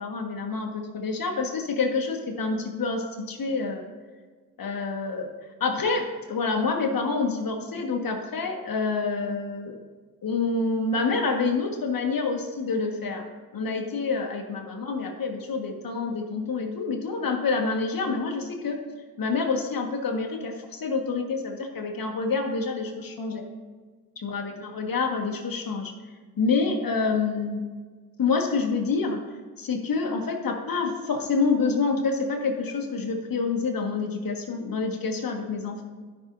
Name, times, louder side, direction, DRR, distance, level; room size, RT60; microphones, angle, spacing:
voice 1, 0.0-3.8 4.6-5.3 5.6-9.8 10.2-13.3 13.5-18.8 19.2-23.4 24.2-25.9 26.4-27.6 28.2-29.2 29.6-35.8, left 4 dB, 50° left, 3 dB, 1.7 m, -27 dB
13.0 x 5.9 x 2.7 m, 1.5 s
supercardioid pair, 50°, 43 cm